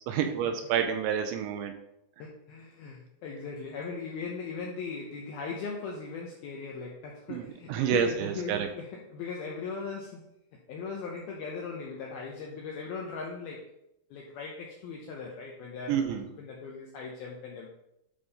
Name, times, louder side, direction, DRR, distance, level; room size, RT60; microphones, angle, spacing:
voice 1, 0.1-1.7 7.3-8.7 15.9-16.2, right 8 dB, 80° right, 6 dB, 2.7 m, -29 dB
voice 2, 2.2-10.3 10.7-13.7 14.1-17.7, left 4 dB, 80° left, -1 dB, 2.2 m, -39 dB
10.5 x 5.3 x 4.2 m, 0.83 s
omnidirectional pair, 5.6 m